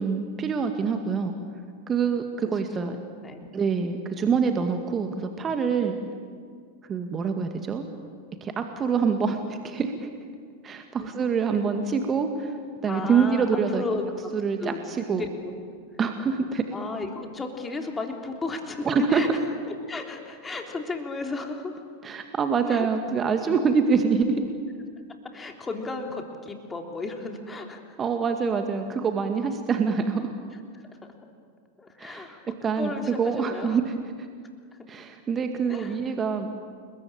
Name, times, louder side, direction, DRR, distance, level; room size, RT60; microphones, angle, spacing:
voice 1, 0.0-1.3 1.9-3.0 3.5-6.0 6.9-7.8 8.4-10.1 10.6-12.5 12.8-13.8 14.3-15.3 16.0-16.6 18.8-19.2 22.0-24.4 28.0-30.3 32.0-32.3 32.6-32.9 33.2-34.0 34.9-36.5, right 5 dB, 25° right, 6 dB, 2.0 m, -25 dB
voice 2, 2.5-3.5 11.0-11.1 11.5-11.8 12.9-14.1 14.6-14.8 15.1-15.5 16.7-19.4 19.7-21.8 22.7-22.9 25.2-28.0 30.7-30.8 31.8-33.8 35.7-36.0, left 3 dB, 15° left, 3 dB, 3.5 m, -34 dB
29.5 x 21.5 x 8.8 m, 2.1 s
figure-of-eight pair, 90°, 0 cm